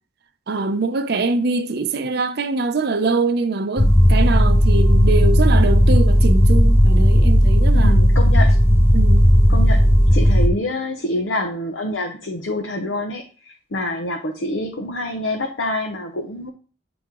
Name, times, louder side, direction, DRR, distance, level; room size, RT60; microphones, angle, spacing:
voice 1, 0.5-8.0 8.9-9.3, right 3 dB, 55° right, 0.5 m, -23 dB
sound 1, 3.8-10.5, equal, 15° left, 0.5 m, -14 dB
voice 2, 7.7-8.6 9.5-16.5, left 1 dB, 80° left, 0.7 m, -26 dB
8.5 x 3.0 x 3.7 m
head